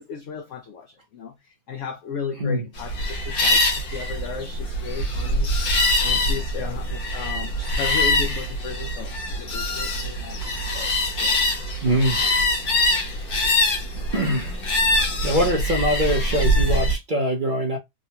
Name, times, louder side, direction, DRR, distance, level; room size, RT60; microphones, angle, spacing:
voice 1, 0.0-10.9 11.2-11.5 15.4-15.5, left 6 dB, 85° left, 0.6 m, -35 dB
sound 1, 2.8-16.9, left 1 dB, 65° left, 1.5 m, -23 dB
voice 2, 11.8-12.3 14.0-14.6 15.2-17.8, equal, 55° right, 0.5 m, -23 dB
3.9 x 2.2 x 2.8 m
omnidirectional pair, 1.8 m